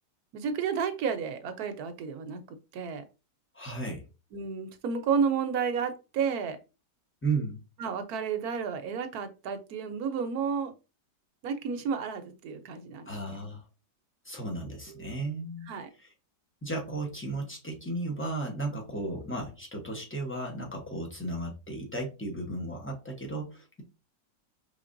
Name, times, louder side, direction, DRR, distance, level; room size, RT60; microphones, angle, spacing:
voice 1, 0.3-3.0 4.3-6.6 7.8-10.7 11.4-13.4 14.9-15.3 15.7-15.9, right 6 dB, 65° right, 1.1 m, -32 dB
voice 2, 3.5-4.0 7.2-7.6 13.1-13.6 14.2-15.7 16.0-16.1 16.6-23.8, right 2 dB, 10° left, 0.6 m, -34 dB
5.1 x 3.5 x 2.5 m
omnidirectional pair, 1.9 m